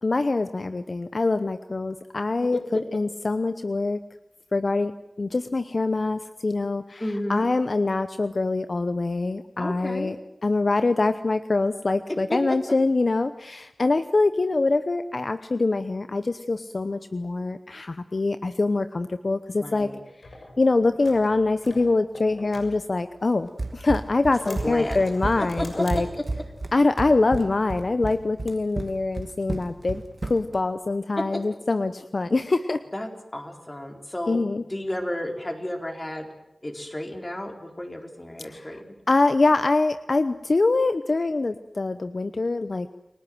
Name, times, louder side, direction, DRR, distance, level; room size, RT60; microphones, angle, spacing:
voice 1, 0.0-4.0 4.5-4.9 5.2-7.0 7.3-10.2 10.4-19.9 20.6-26.1 26.7-32.8 34.3-34.6 38.5-38.8 39.1-42.9, left 3 dB, 60° left, 11 dB, 0.9 m, -24 dB
voice 2, 7.0-7.5 9.6-10.2 12.3-12.6 19.6-20.0 24.4-25.0 25.4-26.0 31.3-31.4 32.9-34.4 34.7-36.3 36.6-38.8, left 1 dB, 25° left, 4 dB, 4.4 m, -32 dB
sound 1, 20.2-23.5 24.0-26.5, left 2 dB, 80° left, 6.6 m, -45 dB
Run, 23.6-30.6, right 2 dB, 55° right, 2.4 m, -32 dB
29.5 x 19.0 x 7.9 m, 0.86 s
wide cardioid pair, 60°, 0 cm